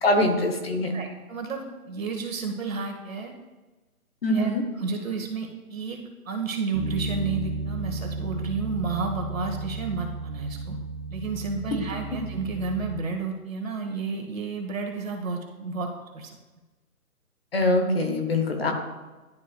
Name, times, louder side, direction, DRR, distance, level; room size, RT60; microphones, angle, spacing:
voice 1, 0.0-0.9 4.2-4.6 17.5-18.7, left 1 dB, 40° left, 4 dB, 1.0 m, -23 dB
voice 2, 0.9-3.3 4.3-4.5 4.7-10.8 11.1-16.3, right 4 dB, 60° right, 2 dB, 1.7 m, -31 dB
Bass guitar, 6.7-13.0, right 3 dB, 45° right, 1.6 m, -33 dB
11.5 x 4.8 x 2.4 m, 1.2 s
hypercardioid pair, 165°, 45 cm